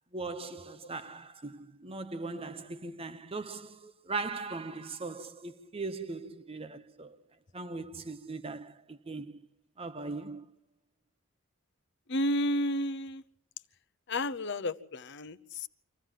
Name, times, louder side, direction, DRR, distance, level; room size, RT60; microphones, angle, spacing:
voice 1, 0.1-7.2 7.5-9.4 9.8-10.5, right 3 dB, 30° right, 0.9 m, -39 dB
voice 2, 12.1-13.2 14.1-15.7, left 1 dB, 55° left, 0.8 m, -31 dB
26.0 x 15.0 x 7.5 m
head